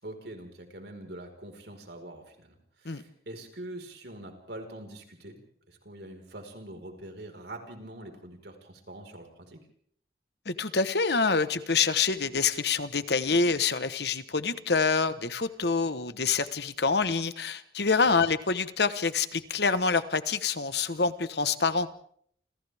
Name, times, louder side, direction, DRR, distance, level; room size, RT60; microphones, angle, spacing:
voice 1, 0.0-5.4 5.7-9.6 18.2-18.3, right 1 dB, 70° right, 4 dB, 4.8 m, -44 dB
voice 2, 10.5-21.9, left 4 dB, 65° left, 12 dB, 1.2 m, -26 dB
29.0 x 28.5 x 3.6 m, 0.63 s
head